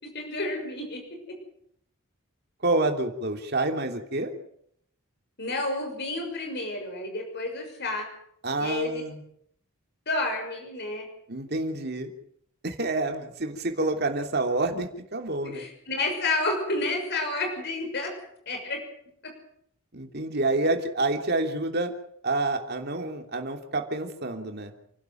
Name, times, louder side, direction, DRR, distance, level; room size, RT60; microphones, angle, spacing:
voice 1, 0.0-1.0 5.4-8.1 8.6-9.0 10.1-11.1 15.4-18.1 18.5-18.8, left 2 dB, 50° left, 3 dB, 6.3 m, -30 dB
voice 2, 2.6-4.3 8.4-9.2 11.3-12.1 12.6-15.6 19.9-21.9 22.2-24.7, right 2 dB, 50° right, 4 dB, 3.0 m, -28 dB
29.0 x 12.5 x 9.2 m, 0.71 s
head